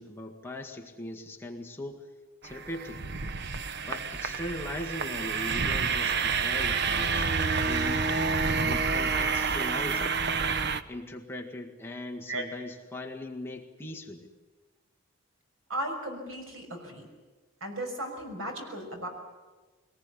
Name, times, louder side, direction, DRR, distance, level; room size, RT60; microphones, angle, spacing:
voice 1, 0.0-2.0 2.4-3.0 3.8-7.3 7.6-8.0 8.6-10.1 10.9-14.3, left 1 dB, 10° left, 0 dB, 1.8 m, -39 dB
sound 1, 2.4-10.8, right 5 dB, 55° right, 0.8 m, -28 dB
voice 2, 15.7-17.1 17.6-19.1, right 1 dB, 75° right, 3 dB, 6.0 m, -35 dB
23.0 x 19.0 x 9.9 m, 1.3 s
head